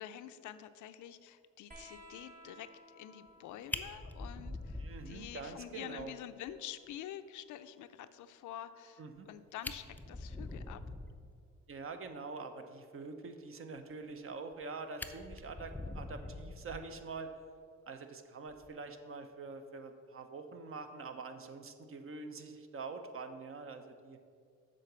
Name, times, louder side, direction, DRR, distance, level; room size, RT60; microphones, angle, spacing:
voice 1, 0.0-10.8, left 11 dB, 75° left, 11 dB, 0.5 m, -47 dB
sound 1, 1.7-8.8 10.1-11.0 12.3-12.4, equal, 25° right, 2.0 m, -60 dB
Fire, 3.3-3.4 3.7-5.6 6.0-6.1 6.5-6.6 6.9-7.0 9.2-9.3 9.5-11.3 14.1-14.6 15.0-17.2 18.5-18.7, left 2 dB, 5° left, 0.4 m, -44 dB
voice 2, 4.8-6.1 9.0-9.3 11.7-17.3 17.9-24.2, right 4 dB, 45° right, 7 dB, 0.8 m, -45 dB
7.5 x 3.9 x 6.7 m, 2.2 s
cardioid pair, 90°, 30 cm